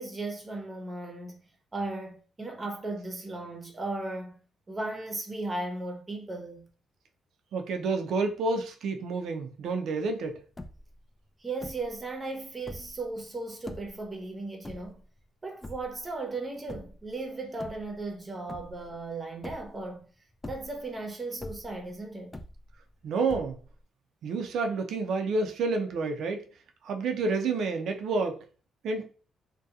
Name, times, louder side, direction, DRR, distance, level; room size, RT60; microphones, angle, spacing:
voice 1, 0.0-4.4 4.7-6.7 11.4-15.0 15.4-20.0 20.5-22.4, right 2 dB, 30° right, 0.7 m, -36 dB
voice 2, 7.5-10.4 23.0-23.6 24.2-26.4 26.8-28.4 28.8-29.0, right 3 dB, 70° right, 0.4 m, -29 dB
sound 1, 10.1-10.2 10.4-11.0 11.6-12.0 12.5-13.1 13.6-14.0 14.6-15.2 15.6-16.1 16.7-17.1 17.5-18.2 18.5-19.0 19.4-20.0 20.3-21.0 21.4-21.9 22.3-22.9 23.3-23.8, left 1 dB, 20° left, 0.3 m, -43 dB
2.7 x 2.2 x 2.3 m
cardioid pair, 75°, 0 cm